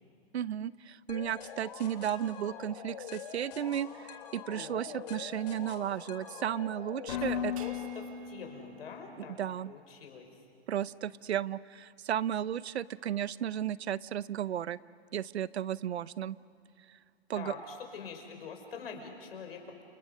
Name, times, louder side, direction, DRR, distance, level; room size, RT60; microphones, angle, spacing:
voice 1, 0.3-7.5 9.4-9.7 10.7-14.8 15.1-16.4 17.3-17.5, right 10 dB, 75° right, 19 dB, 0.7 m, -34 dB
sound 1, 1.1-8.9, left 9 dB, 40° left, 2.6 m, -41 dB
voice 2, 4.5-5.0 7.1-9.4 9.7-10.3 17.3-19.8, left 5 dB, 60° left, 4 dB, 5.3 m, -45 dB
sound 2, 7.6-10.1, right 10 dB, 30° right, 1.4 m, -54 dB
29.5 x 26.5 x 6.5 m, 2.4 s
hypercardioid pair, 170°, 33 cm